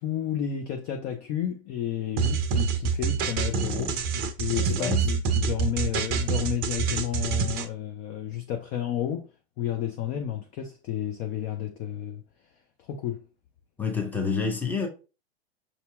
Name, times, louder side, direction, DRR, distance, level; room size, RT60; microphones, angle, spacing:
voice 1, 0.0-4.0 4.4-9.3 9.6-12.2 12.8-13.2, left 10 dB, 25° left, 0.3 m, -31 dB
sound 1, 2.2-7.7, right 6 dB, 30° right, 0.6 m, -26 dB
voice 2, 4.7-5.0 13.8-14.9, left 5 dB, 5° left, 0.7 m, -28 dB
5.8 x 2.7 x 2.3 m
hypercardioid pair, 105°, 32 cm